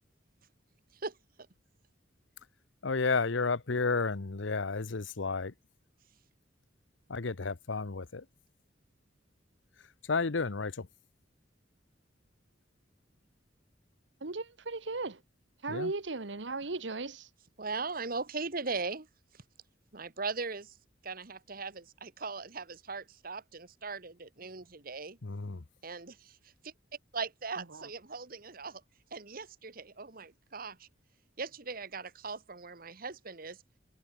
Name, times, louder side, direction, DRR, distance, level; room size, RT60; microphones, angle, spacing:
voice 1, 2.8-5.5 7.1-8.3 9.8-10.9 15.7-15.9 25.2-25.6, left 4 dB, 85° left, 0.9 m, -32 dB
voice 2, 14.2-15.2 15.6-17.3 27.6-27.9, right 3 dB, 75° right, 1.3 m, -37 dB
voice 3, 17.6-19.1 19.9-20.8 21.0-25.2 25.8-26.4 26.6-26.7 27.1-28.8 29.1-30.9 31.4-33.6, right 4 dB, 50° right, 1.6 m, -39 dB
head